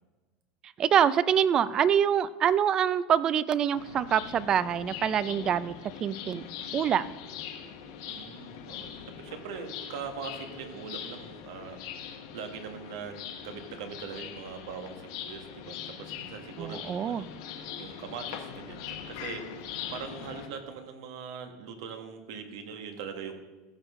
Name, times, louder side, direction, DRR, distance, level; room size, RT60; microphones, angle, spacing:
voice 1, 0.8-5.7 6.0-6.5 6.7-7.1 16.6-17.2, right 9 dB, 35° right, 17 dB, 0.4 m, -25 dB
sound 1, 3.7-20.5, left 8 dB, 75° left, 1.3 m, -42 dB
voice 2, 8.1-8.9 9.2-11.8 12.3-17.3 17.8-19.4 19.9-23.3, right 6 dB, 80° right, 5 dB, 1.5 m, -41 dB
14.5 x 6.3 x 3.7 m, 1.2 s
supercardioid pair, 125°, 2 cm